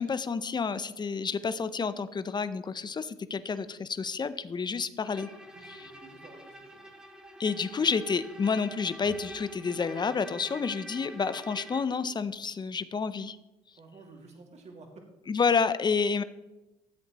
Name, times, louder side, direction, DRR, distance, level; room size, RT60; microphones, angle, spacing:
voice 1, 0.0-5.3 5.6-5.9 7.4-13.4 15.3-16.2, left 5 dB, 30° left, 13 dB, 0.7 m, -29 dB
Bowed string instrument, 5.0-12.0, equal, 5° right, 2.1 m, -46 dB
voice 2, 5.5-6.8 13.8-14.9, right 3 dB, 45° right, 1 dB, 2.3 m, -52 dB
14.0 x 7.9 x 3.1 m, 1.0 s
supercardioid pair, 75°, 16 cm